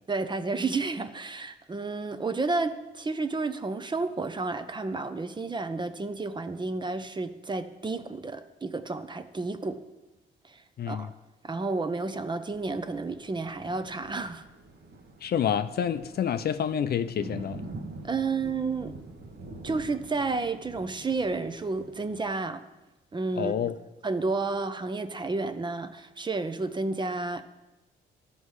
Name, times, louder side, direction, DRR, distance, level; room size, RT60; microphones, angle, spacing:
voice 1, 0.1-9.8 10.4-10.6 10.9-11.1 11.4-14.5 18.0-18.9 19.6-22.6 23.1-23.7 24.0-27.4, right 3 dB, 25° right, 10 dB, 0.7 m, -31 dB
voice 2, 10.8-11.1 15.2-17.7 23.4-23.8, left 8 dB, 55° left, 11 dB, 0.5 m, -28 dB
Thunder, 12.5-22.2, right 2 dB, 60° right, 1.4 m, -45 dB
13.0 x 5.6 x 4.8 m, 1.0 s
cardioid pair, 90°, 20 cm